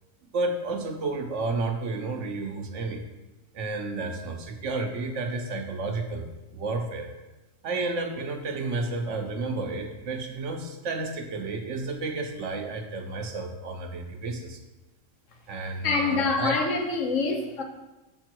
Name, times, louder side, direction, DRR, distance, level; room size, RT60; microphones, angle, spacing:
voice 1, 0.3-3.0 3.5-7.1 7.6-14.6 15.5-16.6, right 3 dB, 70° right, 4 dB, 1.2 m, -31 dB
voice 2, 15.8-17.6, left 4 dB, 80° left, 3 dB, 1.3 m, -25 dB
6.7 x 5.3 x 4.6 m, 1.1 s
omnidirectional pair, 1.3 m